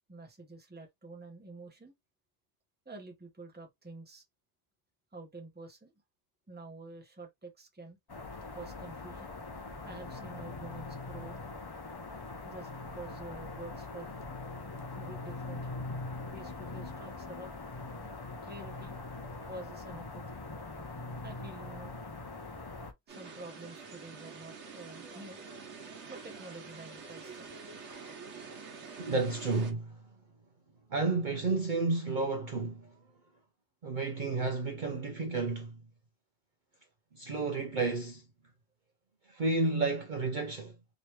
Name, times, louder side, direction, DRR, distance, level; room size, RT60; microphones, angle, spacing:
voice 1, 0.1-1.9 2.8-4.2 5.1-5.9 6.5-8.0 8.5-9.4 9.8-11.4 12.5-14.2 15.0-15.8 16.3-17.6 18.4-19.0 19.5-20.4 21.2-22.0 23.1-25.4 26.1-27.5, right 2 dB, 10° right, 0.8 m, -48 dB
sound 1, 8.1-22.9, left 3 dB, 35° left, 0.4 m, -42 dB
sound 2, 23.1-29.7, right 5 dB, 85° right, 1.3 m, -47 dB
voice 2, 29.0-30.0 30.9-32.9 33.8-35.8 37.1-38.2 39.3-40.7, right 3 dB, 50° right, 0.7 m, -31 dB
3.0 x 2.9 x 3.1 m
omnidirectional pair, 1.2 m